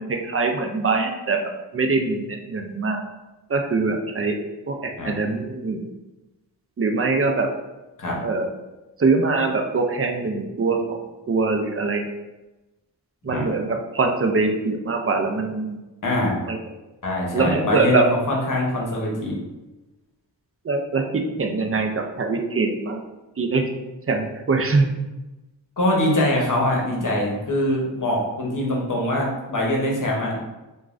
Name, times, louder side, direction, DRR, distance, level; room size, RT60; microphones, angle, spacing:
voice 1, 0.0-1.4 1.7-3.0 3.5-4.4 4.7-4.8 5.0-5.8 6.8-7.5 8.2-8.5 9.0-11.0 11.3-12.0 13.2-15.8 16.5-16.6 17.3-18.0 20.7-23.0 23.4-23.7 24.1-24.9, right 3 dB, 35° right, 3 dB, 0.4 m, -23 dB
voice 2, 16.0-16.4 17.0-19.3 25.8-30.4, left 1 dB, 45° left, -2 dB, 0.9 m, -23 dB
3.0 x 2.3 x 2.5 m, 1.1 s
cardioid pair, 45°, 43 cm